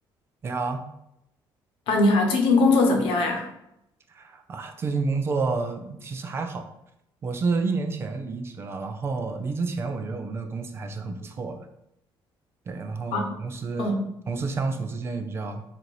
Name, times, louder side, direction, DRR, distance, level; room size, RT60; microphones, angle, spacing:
voice 1, 0.4-0.8 4.1-6.7 7.2-11.7 12.7-13.9 14.3-15.6, right 4 dB, 30° right, 6 dB, 0.4 m, -29 dB
voice 2, 1.9-3.4 13.1-13.3 13.8-14.1, left 3 dB, 85° left, 2 dB, 1.0 m, -21 dB
4.2 x 2.6 x 4.6 m, 0.81 s
cardioid pair, 170°, 9 cm